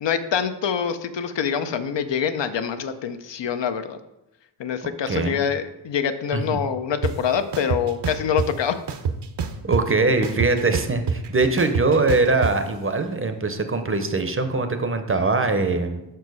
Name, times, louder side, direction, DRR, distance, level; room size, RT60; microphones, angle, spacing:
voice 1, 0.0-4.0 4.6-8.8, left 7 dB, 70° left, 9 dB, 0.6 m, -25 dB
voice 2, 5.1-5.5 6.3-6.7 9.6-16.0, right 3 dB, 30° right, 8 dB, 0.6 m, -22 dB
sound 1, 7.0-7.1 7.5-8.5 8.9-9.9 10.2-12.5, right 6 dB, 65° right, 0.6 m, -26 dB
6.0 x 4.6 x 4.7 m, 0.93 s
wide cardioid pair, 95°, 45 cm